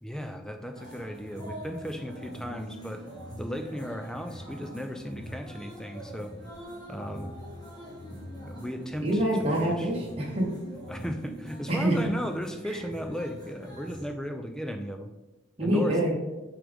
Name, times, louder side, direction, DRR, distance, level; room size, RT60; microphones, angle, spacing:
voice 1, 0.0-3.0 3.4-6.3 6.9-7.3 8.4-9.2 9.6-9.9 10.9-15.1 15.6-16.0, equal, 5° left, 5 dB, 0.4 m, -35 dB
sound 1, 0.7-14.1, right 1 dB, 20° left, 1.8 m, -43 dB
voice 2, 9.0-10.5 11.7-11.9 12.7-12.8 15.6-16.2, right 1 dB, 30° right, -4 dB, 1.0 m, -26 dB
7.3 x 4.7 x 3.5 m, 1.1 s
head